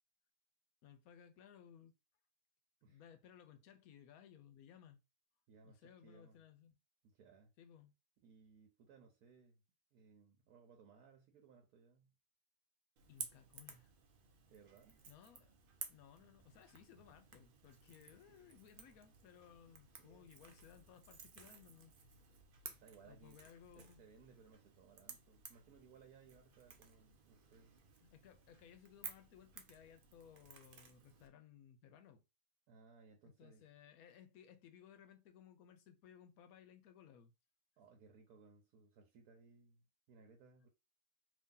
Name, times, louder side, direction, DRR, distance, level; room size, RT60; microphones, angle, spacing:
voice 1, 0.8-1.9 2.9-5.0 5.6-6.7 7.6-7.9 13.1-13.9 15.1-15.5 15.9-21.9 23.1-24.0 28.0-32.2 33.2-37.3, left 8 dB, 75° left, 1.1 m, -61 dB
voice 2, 5.5-6.4 7.0-7.5 8.2-9.6 9.9-12.1 14.5-15.0 19.5-19.6 20.0-20.3 22.7-23.4 23.7-27.7 32.7-33.6 37.8-40.7, right 5 dB, 80° right, 1.2 m, -64 dB
Crackle / Crack, 13.0-31.3, right 6 dB, 55° right, 0.6 m, -56 dB
2.8 x 2.7 x 3.7 m
omnidirectional pair, 1.6 m